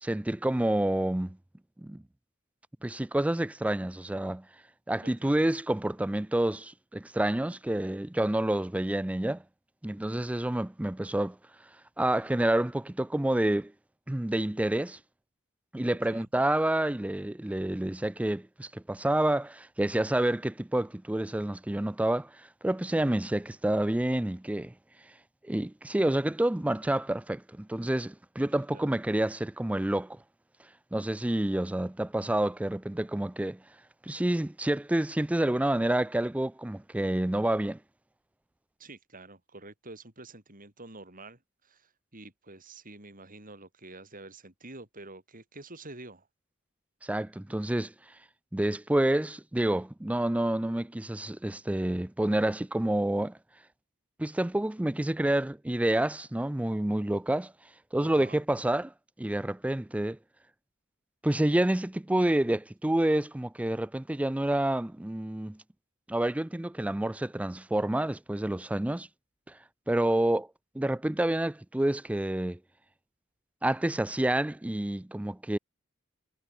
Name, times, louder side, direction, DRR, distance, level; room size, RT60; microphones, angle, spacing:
voice 1, 0.0-1.4 1.8-2.0 2.8-4.5 4.9-9.4 9.8-11.4 12.0-13.7 14.1-15.0 15.7-24.7 25.4-30.2 30.9-33.6 34.0-37.8 47.0-47.9 48.5-53.4 54.2-57.5 57.9-58.9 59.2-60.2 61.2-65.6 66.1-69.1 69.5-69.6 69.9-70.5 70.7-72.6 73.6-75.6, right 1 dB, 5° right, 0.4 m, -28 dB
voice 2, 5.0-5.4 15.9-16.3 28.7-28.9 38.8-46.3 58.0-58.4, right 2 dB, 40° right, 7.2 m, -48 dB
head